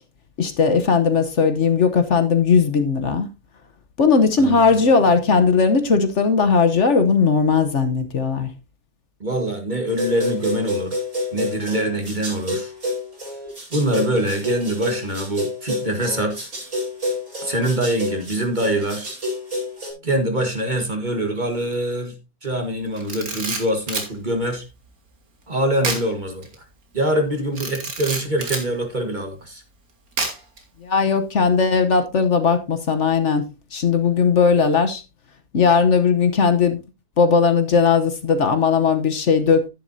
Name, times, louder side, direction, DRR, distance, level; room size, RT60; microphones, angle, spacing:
voice 1, 0.4-3.3 4.0-8.5 30.8-33.4 33.7-35.0 35.5-36.8 37.2-39.7, left 5 dB, 55° left, 1.3 m, -18 dB
voice 2, 4.4-4.7 9.2-11.0 11.3-12.7 13.7-16.5 17.4-19.1 20.0-22.1 22.4-24.6 25.5-26.6 26.9-29.6, right 1 dB, 30° right, 1.7 m, -24 dB
sound 1, 9.9-19.9, left 1 dB, 60° right, 5.2 m, -29 dB
Camera, 23.0-24.1 25.8-26.1 26.4-26.5 27.5-28.7 30.2-30.6, right 3 dB, 75° right, 2.5 m, -27 dB
10.5 x 10.5 x 2.7 m
omnidirectional pair, 1.5 m